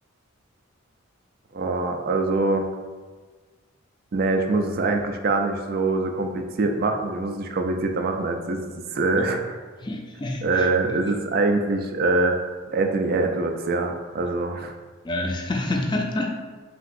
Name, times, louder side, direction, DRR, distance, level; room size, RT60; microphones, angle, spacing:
voice 1, 1.5-2.7 4.1-9.5 10.4-12.4 12.7-14.7, right 3 dB, 45° right, 5 dB, 0.4 m, -24 dB
voice 2, 9.8-11.1 15.0-16.3, left 2 dB, 20° left, 1 dB, 0.4 m, -28 dB
5.7 x 2.9 x 2.6 m, 1.4 s
head